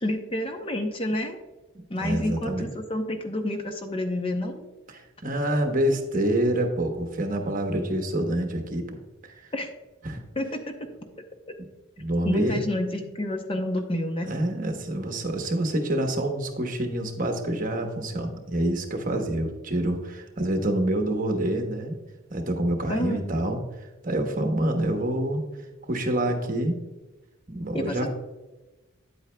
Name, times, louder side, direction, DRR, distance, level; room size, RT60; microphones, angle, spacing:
voice 1, 0.0-1.4 1.9-4.6 9.5-9.7 10.4-10.6 12.2-14.3 22.9-23.2 27.7-28.1, left 1 dB, 25° left, 5 dB, 0.6 m, -29 dB
voice 2, 1.7-2.7 4.9-9.0 9.2-9.3 10.0-10.2 11.6-11.7 12.0-12.6 14.3-22.0 22.3-23.6 24.0-25.4 25.9-26.8 27.5-28.1, right 1 dB, 40° right, 4 dB, 1.0 m, -27 dB
9.4 x 8.2 x 2.2 m, 1.1 s
head